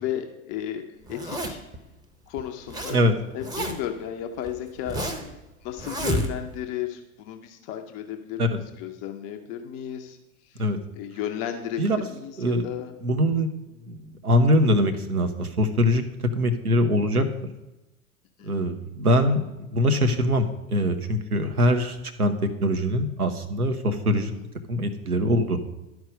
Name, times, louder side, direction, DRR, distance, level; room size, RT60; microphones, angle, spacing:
voice 1, 0.0-0.8 1.1-1.6 2.3-3.0 3.3-5.0 5.6-10.2 10.4-10.7 11.0-12.9 18.4-18.5 24.3-24.4, left 10 dB, 20° left, 5 dB, 0.4 m, -34 dB
Zipper (clothing), 1.1-1.8 2.4-3.0 3.2-4.0 4.5-5.3 5.8-6.6, right 1 dB, 10° right, 0.7 m, -30 dB
voice 2, 13.0-13.5 13.9-16.0 16.4-17.2 18.4-19.4 19.7-24.3 24.7-25.6, equal, 85° right, 6 dB, 1.0 m, -23 dB
11.5 x 4.6 x 5.2 m, 0.99 s
figure-of-eight pair, 90°, 44 cm